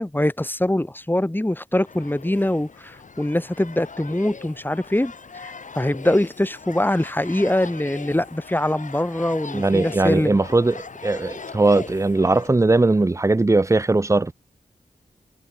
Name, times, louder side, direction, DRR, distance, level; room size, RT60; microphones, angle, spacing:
voice 1, 0.0-10.4, left 1 dB, 10° left, 1.8 m, -23 dB
sound 1, 1.8-12.5, left 5 dB, 55° left, 1.3 m, -40 dB
voice 2, 9.5-14.3, right 2 dB, 20° right, 0.6 m, -19 dB
cardioid pair, 55°, 16 cm